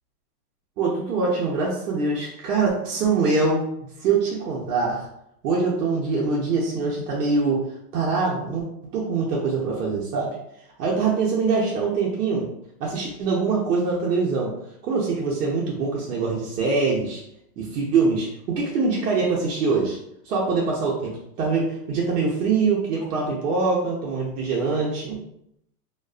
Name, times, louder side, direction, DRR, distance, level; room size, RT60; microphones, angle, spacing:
voice 1, 0.8-3.6 4.0-5.1 5.4-7.6 7.9-10.4 10.8-12.5 12.8-14.5 14.8-17.2 17.6-20.0 20.2-25.2, right 4 dB, 80° right, -4 dB, 0.8 m, -24 dB
2.4 x 2.3 x 2.2 m, 0.77 s
hypercardioid pair, 130°, 48 cm